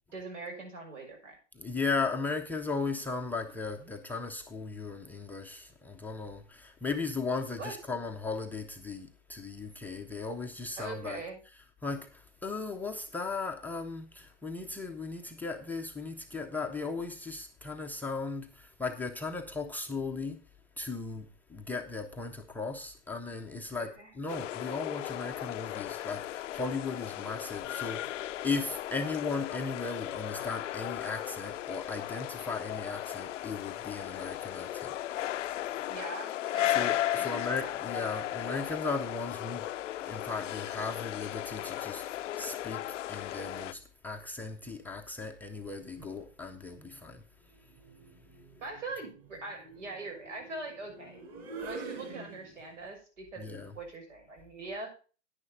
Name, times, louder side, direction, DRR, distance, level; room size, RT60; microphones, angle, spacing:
voice 1, 0.1-1.4 7.6-7.7 10.8-11.4 23.8-24.2 35.9-37.5 37.8-38.1 48.6-51.2 51.6-54.9, right 3 dB, 85° right, 6.6 m, -42 dB
voice 2, 1.6-11.2 11.8-20.4 20.8-23.9 24.2-34.9 35.2-35.3 36.7-39.7 40.0-47.2 53.4-53.7, left 4 dB, 5° left, 0.5 m, -37 dB
sound 1, 24.3-43.7, left 13 dB, 90° left, 0.5 m, -36 dB
sound 2, 45.8-46.2 47.6-52.9, right 3 dB, 40° right, 5.6 m, -46 dB
10.0 x 9.9 x 4.0 m
hypercardioid pair, 140°, 36 cm